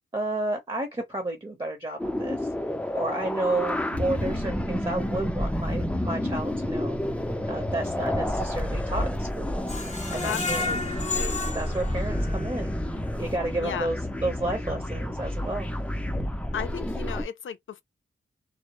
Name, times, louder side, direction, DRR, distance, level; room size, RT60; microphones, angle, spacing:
voice 1, 0.1-2.5 2.9-7.0 7.5-9.6 10.1-10.7 11.5-12.7 13.2-15.7, right 2 dB, 25° right, 0.8 m, -31 dB
sound 1, 2.0-17.3, left 1 dB, 5° left, 0.5 m, -30 dB
sound 2, 3.9-15.2, right 4 dB, 60° right, 0.6 m, -47 dB
Screech, 9.7-12.7 13.1-13.2 13.6-13.7, left 3 dB, 35° left, 0.8 m, -32 dB
voice 2, 10.2-11.4 13.6-13.9 16.5-17.8, left 8 dB, 70° left, 0.4 m, -35 dB
2.0 x 2.0 x 2.9 m
cardioid pair, 55°, 21 cm